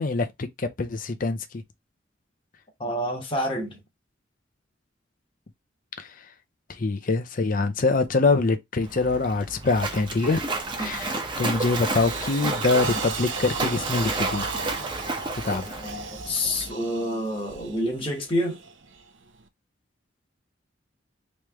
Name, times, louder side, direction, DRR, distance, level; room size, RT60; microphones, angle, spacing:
voice 1, 0.0-1.4 6.0-6.1 6.7-10.4 10.8-14.5 15.4-15.8, left 3 dB, 45° left, 0.5 m, -24 dB
voice 2, 2.8-3.8 10.8-10.9 15.8-18.6, left 1 dB, 30° left, 1.1 m, -28 dB
Splash splatter, 8.8-16.7, right 3 dB, 25° right, 0.8 m, -31 dB
sound 1, 9.8-10.1 10.6-10.9 11.3-19.4, right 5 dB, 75° right, 0.7 m, -37 dB
3.1 x 3.1 x 3.4 m
head